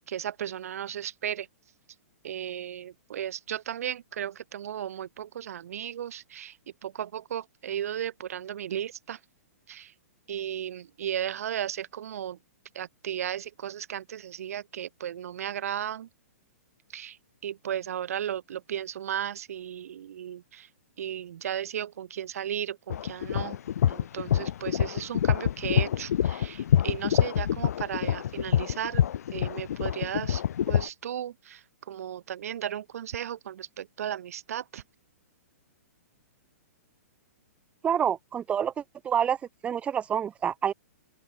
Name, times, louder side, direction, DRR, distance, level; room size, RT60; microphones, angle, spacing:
voice 1, 0.1-1.5 2.2-6.5 6.8-9.2 9.7-9.9 10.3-12.4 12.7-16.1 16.9-17.2 17.4-20.7 21.0-23.6 23.9-29.0 29.3-31.6 31.9-34.8, right 10 dB, 65° right, 0.9 m, -35 dB
sound 1, 22.9-30.9, left 10 dB, 75° left, 0.4 m, -26 dB
voice 2, 37.8-39.4 39.6-40.7, right 8 dB, 15° right, 2.1 m, -27 dB
open air
hypercardioid pair, 155°, 9 cm